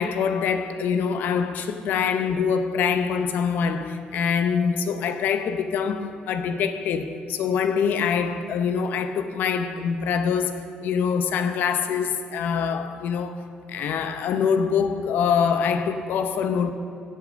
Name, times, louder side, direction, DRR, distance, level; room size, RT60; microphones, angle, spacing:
voice 1, 0.0-16.7, left 6 dB, 75° left, 0.8 m, -24 dB
16.5 x 6.7 x 5.1 m
cardioid pair, 160°, 3 cm